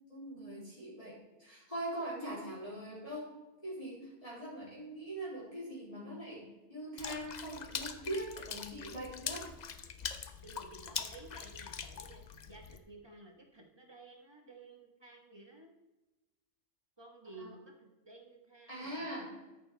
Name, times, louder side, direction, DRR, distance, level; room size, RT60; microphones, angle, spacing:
voice 1, 0.1-3.3 3.6-9.4 17.4-17.5 18.7-19.3, right 1 dB, 30° left, -8 dB, 3.0 m, -42 dB
Water / Splash splatter, 7.0-12.8, left 7 dB, 50° left, 0.6 m, -43 dB
voice 2, 10.4-15.7 17.0-19.1, right 2 dB, 20° right, 2 dB, 1.3 m, -54 dB
13.5 x 6.7 x 3.3 m, 1.0 s
omnidirectional pair, 1.3 m